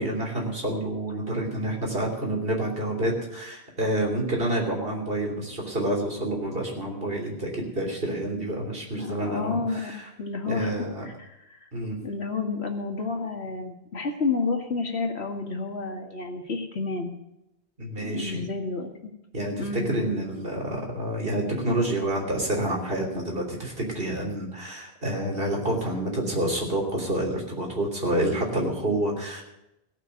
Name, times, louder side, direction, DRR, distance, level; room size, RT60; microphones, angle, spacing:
voice 1, 0.0-10.1 10.5-11.0 11.7-12.0 17.8-18.4 19.3-19.5 19.9-29.4, right 1 dB, 60° right, 0 dB, 3.5 m, -28 dB
voice 2, 8.9-9.9 10.2-10.8 11.0-11.7 12.0-17.1 18.0-19.1 19.6-20.3, left 4 dB, 80° left, 3 dB, 2.1 m, -30 dB
17.5 x 6.0 x 9.3 m, 0.87 s
omnidirectional pair, 1.1 m